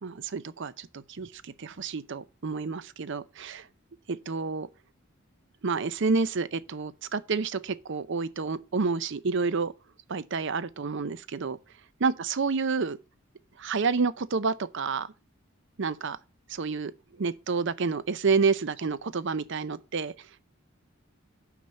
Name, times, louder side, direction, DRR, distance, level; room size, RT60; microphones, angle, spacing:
voice 1, 0.0-3.7 4.1-4.7 5.6-9.7 10.1-11.6 12.0-13.0 13.6-15.1 15.8-16.2 16.5-16.9 17.2-20.1, right 4 dB, 60° right, 0.6 m, -29 dB
6.0 x 5.7 x 6.6 m
head